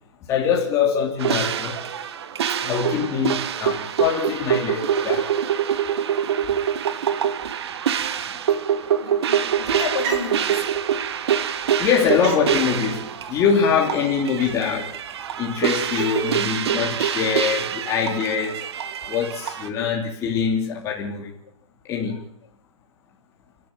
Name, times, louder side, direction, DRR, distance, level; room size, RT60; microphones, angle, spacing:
voice 1, 0.3-1.8 2.6-5.3 8.3-8.5 11.8-14.9 15.4-18.6 19.1-21.3 21.9-22.2, left 6 dB, 15° left, 3.1 m, -23 dB
sound 1, 1.2-19.7, right 9 dB, 50° right, 1.5 m, -25 dB
voice 2, 9.0-10.6 11.7-11.8 22.1-22.2, left 6 dB, 55° left, 4.6 m, -32 dB
sound 2, 9.5-17.3, right 6 dB, 30° right, 3.3 m, -39 dB
29.0 x 12.5 x 8.9 m
hypercardioid pair, 155°, 17 cm